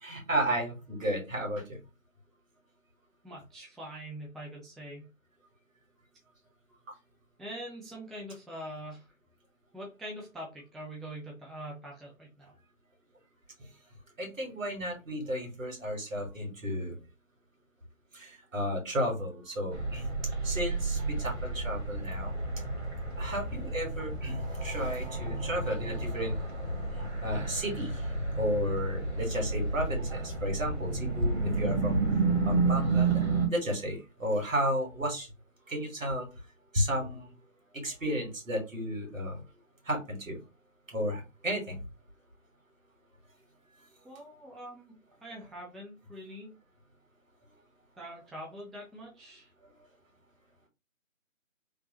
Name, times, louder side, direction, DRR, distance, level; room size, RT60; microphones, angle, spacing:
voice 1, 0.0-1.8 13.6-13.7 14.2-17.0 18.1-20.1 20.4-22.4 23.2-26.3 26.9-28.1 28.3-33.2 33.5-35.3 35.7-36.3 36.7-37.4 37.7-39.4 39.8-40.4 40.9-41.8, equal, 70° right, 2 dB, 1.6 m, -33 dB
voice 2, 3.2-5.1 7.4-9.1 9.7-12.5 20.9-21.2 44.0-46.5 48.0-49.5, equal, ahead, -2 dB, 0.4 m, -44 dB
sound 1, 19.7-33.5, right 3 dB, 50° right, 1.1 m, -31 dB
3.2 x 2.0 x 2.8 m, 0.27 s
figure-of-eight pair, 170°, 41 cm